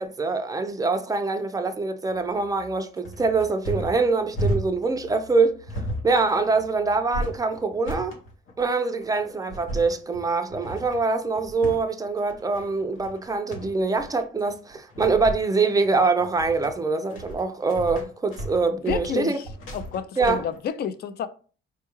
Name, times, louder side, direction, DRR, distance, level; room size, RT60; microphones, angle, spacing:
voice 1, 0.0-8.2 8.6-19.4 20.2-20.4, right 4 dB, 15° right, 0.4 m, -24 dB
sound 1, 2.1-20.7, right 1 dB, 75° left, 0.9 m, -35 dB
voice 2, 18.9-19.3 19.7-21.3, left 8 dB, 50° left, 0.4 m, -29 dB
4.5 x 2.3 x 3.0 m
cardioid pair, 130°, 21 cm